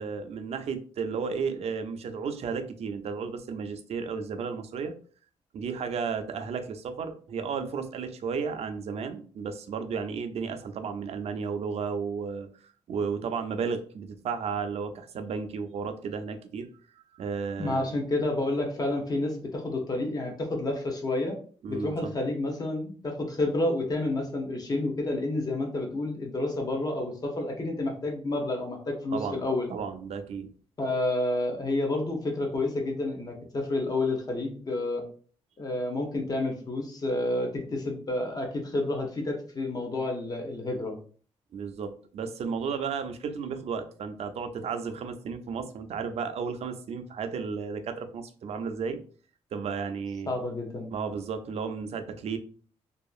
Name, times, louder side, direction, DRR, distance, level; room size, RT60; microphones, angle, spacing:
voice 1, 0.0-4.9 5.5-12.5 12.9-16.7 17.1-18.0 21.6-22.1 29.1-29.4 29.7-30.5 41.5-49.0 49.5-50.3 50.9-52.4, right 5 dB, 65° right, 8 dB, 0.4 m, -33 dB
voice 2, 17.6-21.4 21.7-29.7 30.8-35.0 35.6-41.0 50.3-50.9, left 2 dB, 35° left, 2 dB, 0.8 m, -29 dB
2.7 x 2.4 x 2.3 m, 0.43 s
cardioid pair, 115°, 12 cm